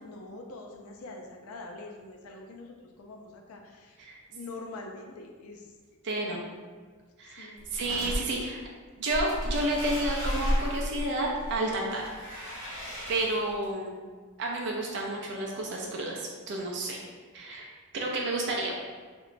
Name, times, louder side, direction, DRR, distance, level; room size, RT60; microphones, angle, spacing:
voice 1, 0.0-4.0 4.3-5.7 6.2-6.4 7.2-7.7, left 2 dB, 75° left, 2 dB, 0.4 m, -44 dB
voice 2, 6.0-6.4 7.2-8.6 9.0-12.0 13.1-14.0 14.4-17.0 17.3-18.8, right 1 dB, 55° right, -2 dB, 0.4 m, -31 dB
sound 1, 7.6-8.2 9.1-13.6, equal, 40° right, 1.1 m, -33 dB
2.9 x 2.1 x 2.4 m, 1.5 s
head